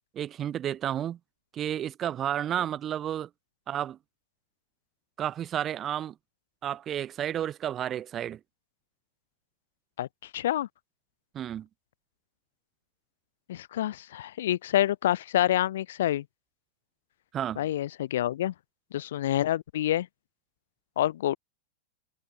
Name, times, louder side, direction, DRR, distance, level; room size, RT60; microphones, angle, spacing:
voice 1, 0.1-1.2 1.5-3.3 3.7-4.0 5.2-6.2 6.6-8.4 11.3-11.7 17.3-17.7, right 10 dB, 25° right, 2.5 m, -31 dB
voice 2, 10.3-10.7 13.5-16.2 17.6-18.5 18.9-20.1 21.0-21.4, left 12 dB, 75° left, 1.0 m, -27 dB
supercardioid pair, 135°, 0 cm